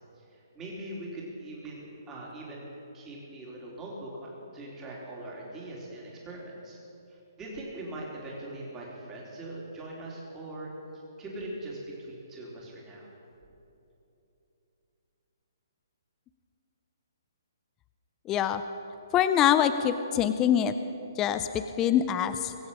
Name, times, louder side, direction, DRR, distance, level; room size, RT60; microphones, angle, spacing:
voice 1, 0.3-6.8 7.4-10.7 11.2-13.1, right 1 dB, 15° right, -4 dB, 3.3 m, -41 dB
voice 2, 18.3-18.6 19.1-20.7 21.2-22.5, left 10 dB, 20° left, 10 dB, 0.5 m, -24 dB
23.0 x 7.9 x 5.6 m, 3.0 s
hypercardioid pair, 145°, 2 cm